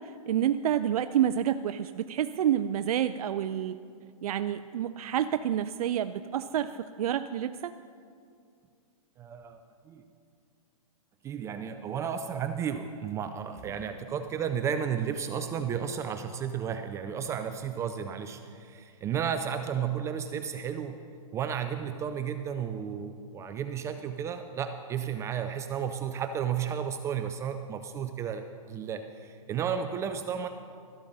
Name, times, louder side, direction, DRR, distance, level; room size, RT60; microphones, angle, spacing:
voice 1, 0.0-3.8 4.2-7.7, right 10 dB, 80° right, 11 dB, 0.4 m, -28 dB
voice 2, 9.2-10.0 11.2-21.0 21.3-30.5, right 8 dB, 15° right, 8 dB, 0.3 m, -33 dB
13.0 x 12.5 x 4.0 m, 2.3 s
hypercardioid pair, 140°, 19 cm